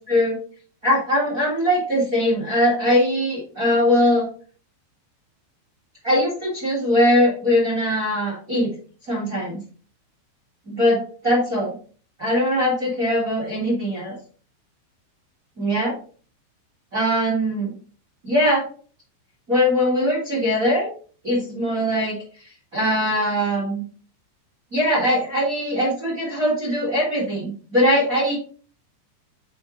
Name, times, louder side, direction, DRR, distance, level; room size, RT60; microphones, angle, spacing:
voice 1, 0.8-4.3 6.0-8.7 9.1-9.6 10.7-11.7 12.2-14.1 15.6-15.9 16.9-17.7 18.2-18.7 19.5-20.9 21.2-22.2 22.7-23.8 24.7-28.4, equal, 50° right, -4 dB, 1.0 m, -21 dB
7.0 x 4.6 x 3.8 m, 0.42 s
omnidirectional pair, 5.7 m